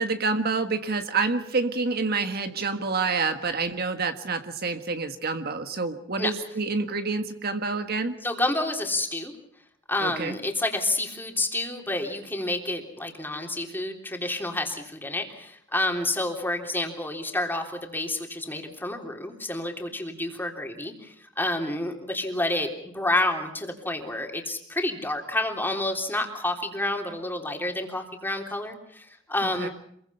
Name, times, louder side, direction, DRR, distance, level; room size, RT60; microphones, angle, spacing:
voice 1, 0.0-8.2 10.0-10.3 29.4-29.7, right 4 dB, 55° right, 8 dB, 1.5 m, -28 dB
voice 2, 8.2-9.3 9.9-22.7 22.9-29.7, left 1 dB, 10° left, 2 dB, 3.5 m, -29 dB
27.5 x 22.5 x 5.7 m, 0.71 s
head